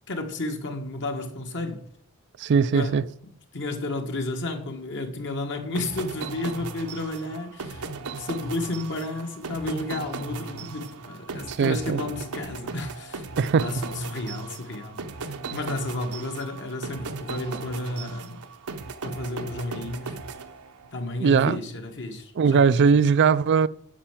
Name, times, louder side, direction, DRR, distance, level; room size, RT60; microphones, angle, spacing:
voice 1, 0.1-1.8 2.7-3.0 3.5-7.9 8.1-13.3 13.6-15.0 15.5-18.4 19.0-20.2 20.9-22.8, left 2 dB, 55° left, 1.6 m, -32 dB
voice 2, 2.4-3.1 11.5-12.0 13.4-13.7 21.2-21.6 22.4-23.7, right 6 dB, 55° right, 0.4 m, -20 dB
sound 1, 5.7-21.0, right 4 dB, 90° right, 1.0 m, -37 dB
9.9 x 5.7 x 7.4 m
head